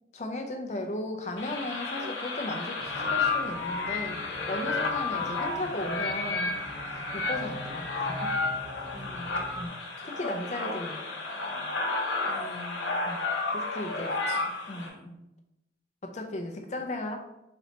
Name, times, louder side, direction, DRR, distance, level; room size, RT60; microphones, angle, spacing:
voice 1, 0.1-4.2 4.5-6.6 6.9-8.3 9.6-9.7 10.0-11.0 13.1-13.2 13.5-14.2 14.7-14.9 16.0-17.2, left 1 dB, 35° left, 4 dB, 0.4 m, -36 dB
sound 1, 1.4-14.9, left 3 dB, 80° left, 0.7 m, -32 dB
sound 2, 2.8-9.7, left 1 dB, 5° right, 0.7 m, -45 dB
voice 2, 8.9-9.5 12.2-12.9 14.3-15.2, equal, 80° right, -8 dB, 1.1 m, -46 dB
4.0 x 3.1 x 2.8 m, 0.90 s
head